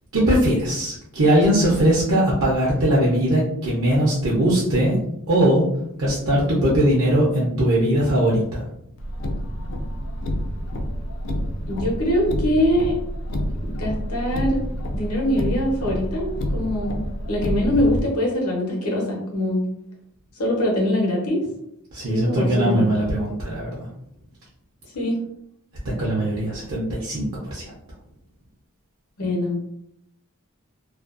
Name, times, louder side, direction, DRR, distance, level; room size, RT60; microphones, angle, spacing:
voice 1, 0.1-5.0 5.3-5.7 6.0-8.7 21.9-23.9 26.0-27.7, right 1 dB, 60° right, -5 dB, 0.6 m, -20 dB
Car, 9.0-18.0, equal, 55° left, 0.3 m, -28 dB
voice 2, 11.7-12.9 13.7-14.6 14.9-19.6 20.4-21.4 22.1-22.9 24.9-25.2 29.2-29.6, left 1 dB, 80° left, -1 dB, 0.8 m, -23 dB
2.4 x 2.2 x 2.4 m, 0.75 s
head